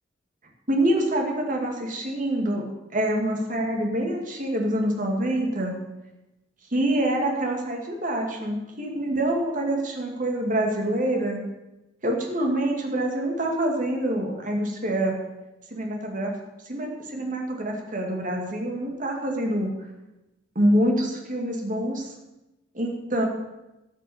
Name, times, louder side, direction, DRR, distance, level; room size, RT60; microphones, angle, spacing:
voice 1, 0.7-2.7 2.9-5.8 6.7-11.4 12.0-15.1 15.7-16.3 16.7-19.7 20.6-22.1 22.7-23.3, right 1 dB, 45° right, 1 dB, 2.2 m, -26 dB
13.0 x 6.2 x 7.1 m, 0.98 s
head